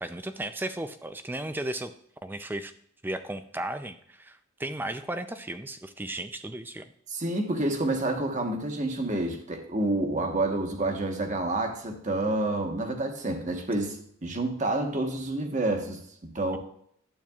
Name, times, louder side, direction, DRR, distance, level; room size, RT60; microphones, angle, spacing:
voice 1, 0.0-1.9 2.2-2.7 3.0-6.9, right 1 dB, 10° right, 9 dB, 0.4 m, -35 dB
voice 2, 7.1-16.6, right 2 dB, 35° right, 4 dB, 1.2 m, -29 dB
12.0 x 8.6 x 2.4 m, 0.66 s
head